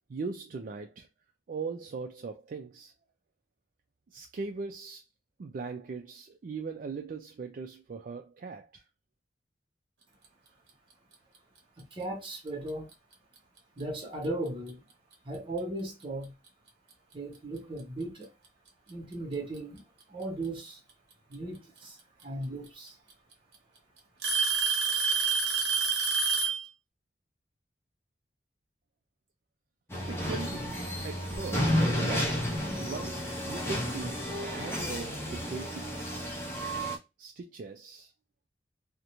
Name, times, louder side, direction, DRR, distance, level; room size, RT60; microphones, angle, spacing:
voice 1, 0.1-1.1 1.5-2.9 4.1-5.0 5.4-8.8 30.1-32.5 32.8-36.0 37.2-38.1, right 4 dB, 50° right, 0.4 m, -40 dB
voice 2, 11.8-12.9 13.8-14.8 15.2-16.3 17.1-18.3 18.9-19.8 20.1-20.8 21.3-22.0 22.2-22.9, right 2 dB, 30° right, 1.0 m, -37 dB
Alarm / Tick-tock, 12.7-12.9 13.8-13.9 14.7-14.8 16.5-16.6 17.8-17.9 19.1-19.6 21.3-21.4 22.7-22.8 23.1-23.6 24.2-26.7, right 5 dB, 70° right, 0.8 m, -27 dB
sound 1, 29.9-37.0, equal, 15° left, 0.7 m, -31 dB
2.5 x 2.1 x 2.9 m
head